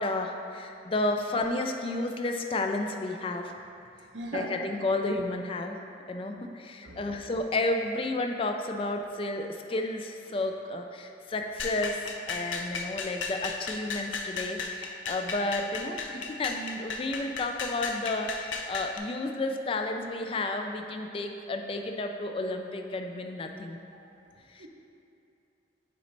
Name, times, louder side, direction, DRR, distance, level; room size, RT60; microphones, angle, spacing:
voice 1, 0.0-3.5 4.3-5.8 6.1-23.8 24.5-24.7, left 2 dB, 30° left, 4 dB, 0.3 m, -32 dB
voice 2, 4.1-4.5 6.8-7.0 24.6-24.7, right 2 dB, 75° right, 0 dB, 0.8 m, -37 dB
sound 1, 11.6-19.0, left 4 dB, 90° left, 0.5 m, -35 dB
9.1 x 4.0 x 3.2 m, 2.7 s
head